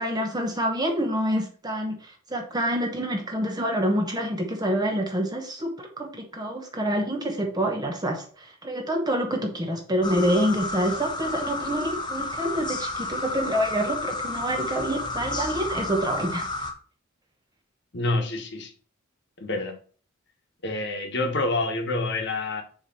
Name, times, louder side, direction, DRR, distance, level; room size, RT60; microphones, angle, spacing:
voice 1, 0.0-16.4, equal, 20° right, 3 dB, 0.9 m, -27 dB
sound 1, 10.0-16.7, left 3 dB, 20° left, 0.9 m, -31 dB
voice 2, 17.9-18.7 19.4-19.7 20.6-22.6, left 2 dB, 55° left, 4 dB, 1.4 m, -27 dB
7.1 x 3.3 x 5.5 m, 0.42 s
head